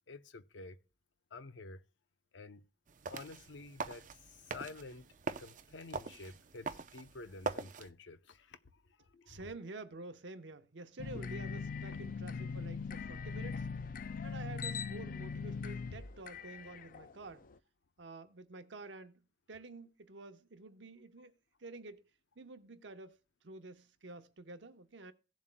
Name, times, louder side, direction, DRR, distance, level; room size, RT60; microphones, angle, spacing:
voice 1, 0.1-0.8 1.3-1.8 2.3-2.6 3.1-5.1 5.4-9.5 11.9-12.1, left 3 dB, 85° left, 0.7 m, -50 dB
sound 1, 2.9-7.9, right 4 dB, 45° right, 0.6 m, -43 dB
voice 2, 9.3-13.9 14.2-17.5 18.0-21.3 21.6-22.1 22.4-23.2 23.4-25.1, right 2 dB, 85° right, 0.9 m, -49 dB
sound 2, 11.0-17.5, left 5 dB, 50° left, 0.4 m, -41 dB
17.5 x 7.3 x 2.2 m
head